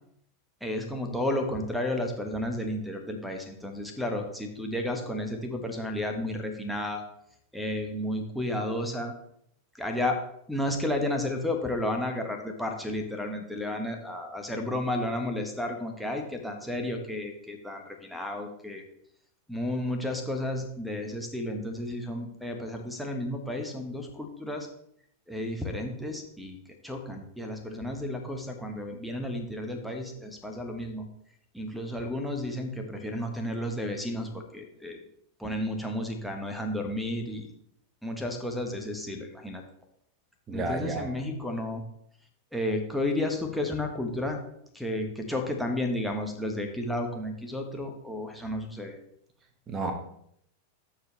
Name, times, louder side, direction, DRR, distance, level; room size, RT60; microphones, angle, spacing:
voice 1, 0.6-7.0 7.5-9.1 9.8-10.2 10.5-18.8 19.5-24.7 25.3-26.6 26.8-31.1 31.5-35.0 35.4-37.4 38.0-39.6 40.5-41.8 42.5-44.4 44.7-48.9, left 1 dB, ahead, 5 dB, 1.3 m, -32 dB
voice 2, 40.5-41.1 49.7-49.9, right 2 dB, 25° right, 5 dB, 1.5 m, -31 dB
13.5 x 4.7 x 3.4 m, 0.70 s
figure-of-eight pair, 90°, 0 cm